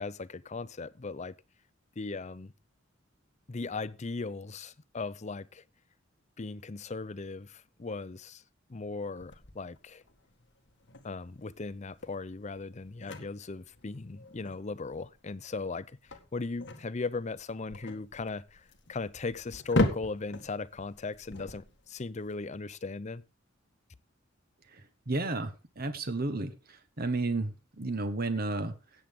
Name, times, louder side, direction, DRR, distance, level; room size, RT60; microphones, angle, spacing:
voice 1, 0.0-1.3 2.0-2.5 3.5-5.6 6.4-8.4 8.7-10.0 11.0-16.0 16.3-23.2, left 3 dB, 35° left, 0.6 m, -38 dB
sound 1, 9.2-22.3, left 1 dB, 60° left, 1.8 m, -37 dB
voice 2, 25.1-26.5 27.0-28.7, right 2 dB, 50° right, 1.3 m, -32 dB
17.5 x 7.7 x 3.6 m
head